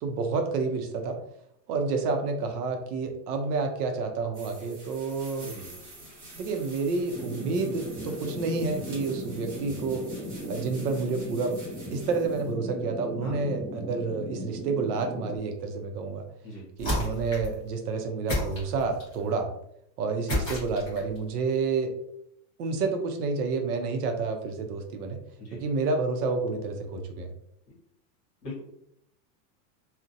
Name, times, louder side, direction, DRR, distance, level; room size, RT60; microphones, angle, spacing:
voice 1, 0.0-1.2 1.7-5.5 6.3-10.1 10.5-11.6 11.9-16.3 16.8-19.5 20.0-21.9 22.6-25.2 25.5-27.3, right 4 dB, 70° right, 4 dB, 0.6 m, -29 dB
sound 1, 4.3-12.5, right 2 dB, 45° right, 1.0 m, -48 dB
voice 2, 5.4-5.7 13.2-13.3 16.4-16.6 25.4-25.6 27.7-27.8 28.4-28.6, left 1 dB, 30° left, -4 dB, 0.8 m, -40 dB
sound 2, 7.1-15.4, equal, 25° right, 0.7 m, -37 dB
sound 3, 16.8-17.6 18.3-19.2 20.3-21.2, left 1 dB, 15° left, 0.5 m, -30 dB
2.5 x 2.1 x 2.6 m, 0.74 s
supercardioid pair, 180°, 49 cm